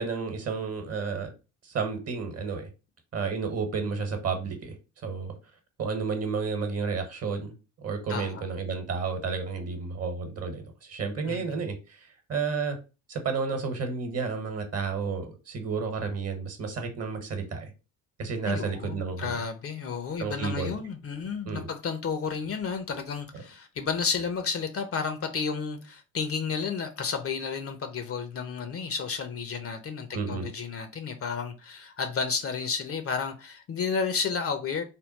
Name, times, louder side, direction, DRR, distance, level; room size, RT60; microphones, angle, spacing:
voice 1, 0.0-1.3 1.6-2.7 3.1-4.7 5.0-5.3 5.8-12.8 13.1-17.7 18.2-19.4 20.2-20.7 21.5-21.7 30.1-30.5, right 5 dB, 40° right, 1.2 m, -31 dB
voice 2, 8.1-8.4 11.3-11.4 18.4-34.8, left 5 dB, 35° left, 0.7 m, -32 dB
3.6 x 2.2 x 4.0 m
hypercardioid pair, 65°, 39 cm